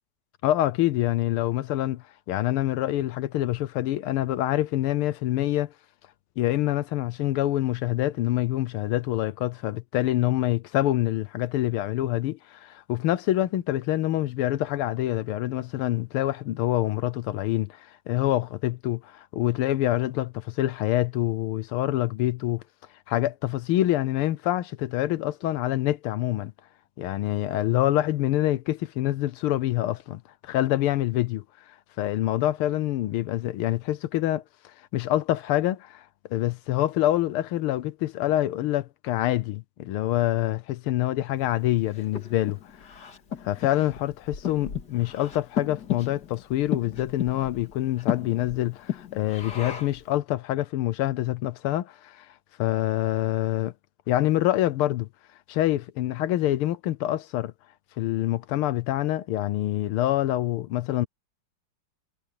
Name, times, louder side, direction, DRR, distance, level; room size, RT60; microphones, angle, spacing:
voice 1, 0.4-5.7 6.4-22.6 23.1-26.5 27.0-31.4 32.0-34.4 34.9-36.0 36.3-42.6 43.4-52.3 52.6-53.7 54.1-55.1 55.5-57.5 58.0-61.1, left 14 dB, 80° left, 1.6 m, -26 dB
Breathing, 41.6-50.1, left 9 dB, 50° left, 2.6 m, -35 dB
omnidirectional pair, 2.4 m